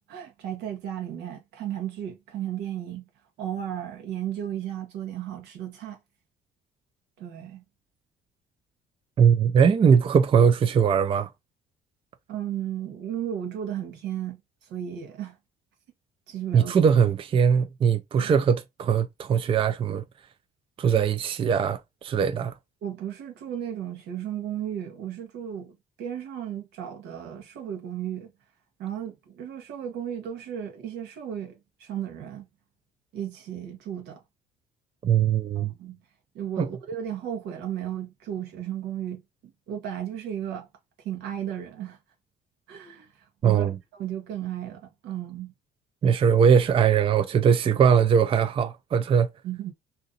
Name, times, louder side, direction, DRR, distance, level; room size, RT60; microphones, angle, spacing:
voice 1, 0.1-3.0 3.4-6.0 7.2-7.6 12.3-14.4 14.7-15.3 16.3-16.7 18.1-18.3 22.8-28.3 28.8-32.5 33.1-34.2 35.5-36.0 36.3-40.7 41.0-42.0 42.7-43.1 43.4-43.6 43.9-45.5 49.4-49.7, right 10 dB, 85° right, 1.2 m, -34 dB
voice 2, 9.2-11.3 16.5-20.0 20.8-22.5 35.0-35.7 36.6-36.7 43.4-43.8 46.0-49.3, right 7 dB, 30° right, 0.4 m, -21 dB
2.8 x 2.6 x 3.8 m
cardioid pair, 110°, 17 cm